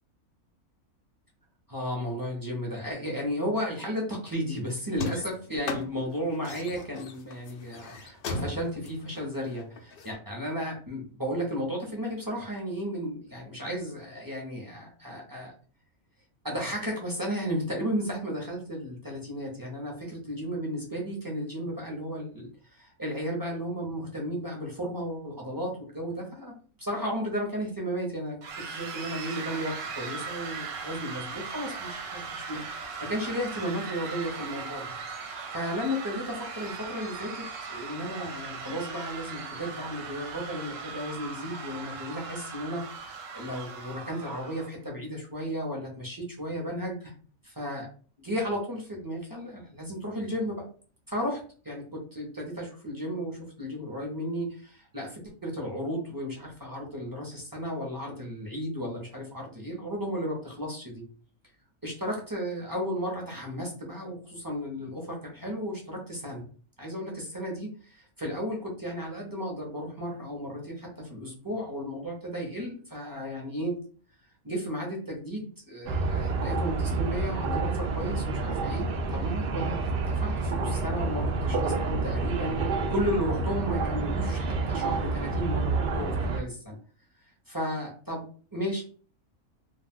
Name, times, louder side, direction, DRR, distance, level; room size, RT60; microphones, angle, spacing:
voice 1, 1.7-15.5 16.4-28.4 28.7-34.8 35.2-47.1 47.4-47.9 48.2-50.6 51.1-61.0 61.8-66.5 66.8-73.7 74.4-82.6 82.9-86.8 87.5-88.3 88.5-88.8, equal, 25° right, -1 dB, 0.5 m, -34 dB
sound 1, 4.9-10.1, left 2 dB, 85° left, 0.4 m, -37 dB
sound 2, 28.4-44.7, right 5 dB, 65° right, 0.9 m, -39 dB
sound 3, 75.9-86.4, right 3 dB, 80° right, 0.5 m, -28 dB
2.4 x 2.3 x 3.5 m, 0.41 s
omnidirectional pair, 1.5 m